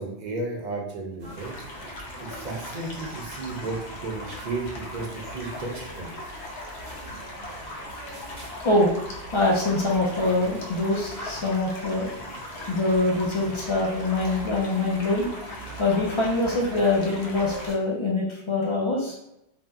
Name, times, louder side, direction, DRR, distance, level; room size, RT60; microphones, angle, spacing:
voice 1, 0.0-1.5 2.2-6.1, right 3 dB, 50° right, -1 dB, 0.7 m, -33 dB
sound 1, 1.2-17.7, right 2 dB, 85° right, 1.2 m, -42 dB
sound 2, 1.4-17.7, left 2 dB, 75° left, 0.9 m, -40 dB
voice 2, 8.3-8.9 9.3-12.1 12.7-15.3 15.8-19.2, left 2 dB, 55° left, -2 dB, 0.3 m, -24 dB
2.7 x 2.1 x 3.4 m, 0.83 s
omnidirectional pair, 1.2 m